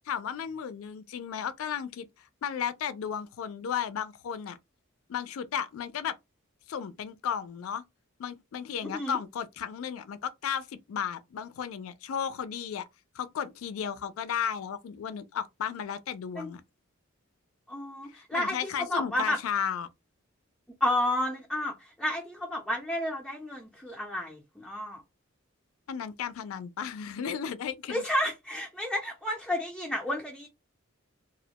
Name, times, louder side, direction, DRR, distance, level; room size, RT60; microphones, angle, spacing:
voice 1, 0.1-2.1 2.4-4.6 5.1-6.1 6.7-7.8 8.2-12.8 13.1-16.6 18.1-19.9 25.9-28.0, left 8 dB, 85° left, 0.3 m, -34 dB
voice 2, 8.8-9.2 16.4-16.5 17.7-19.4 20.8-25.0 27.9-30.5, left 1 dB, 5° left, 0.4 m, -31 dB
2.3 x 2.1 x 2.8 m
head